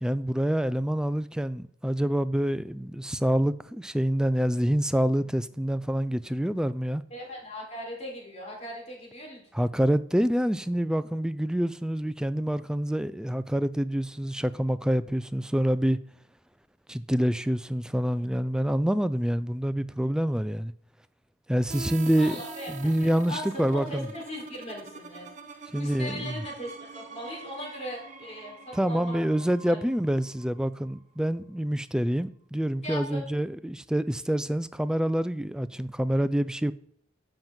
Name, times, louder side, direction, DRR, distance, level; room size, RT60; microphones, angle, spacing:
voice 1, 0.0-7.0 9.5-16.0 16.9-20.7 21.5-22.4 22.7-24.1 25.7-26.4 28.7-36.7, equal, 5° right, 0.3 m, -27 dB
voice 2, 7.1-9.7 22.2-29.8 32.8-33.2, equal, 35° left, 4.1 m, -39 dB
sound 1, 21.7-31.3, right 3 dB, 40° right, 1.1 m, -44 dB
7.7 x 5.9 x 7.4 m
head